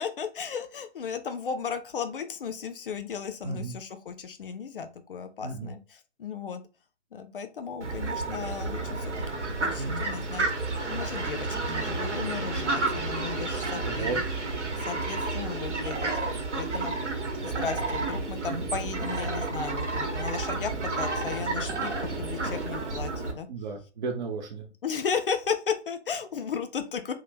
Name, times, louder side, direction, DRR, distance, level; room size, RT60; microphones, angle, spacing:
voice 1, 0.0-6.6 7.1-10.5 10.9-14.2 14.8-16.1 16.5-16.9 17.4-23.5 24.8-27.1, left 6 dB, 50° left, 8 dB, 0.4 m, -35 dB
voice 2, 5.4-5.7 9.8-10.0 13.8-14.2 18.5-18.7 23.5-24.7, right 3 dB, 40° right, 1 dB, 0.5 m, -34 dB
Fowl, 7.8-23.3, right 3 dB, 80° right, 0.8 m, -31 dB
2.5 x 2.0 x 3.2 m, 0.33 s
figure-of-eight pair, 125°, 34 cm